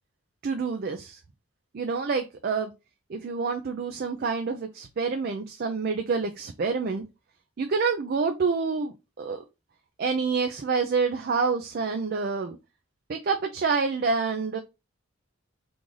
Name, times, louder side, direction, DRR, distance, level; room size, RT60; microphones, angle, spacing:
voice 1, 0.4-1.2 1.7-2.7 3.1-7.0 7.6-9.4 10.0-12.6 13.1-14.6, right 4 dB, 50° right, 0.4 m, -27 dB
3.1 x 2.5 x 3.7 m
head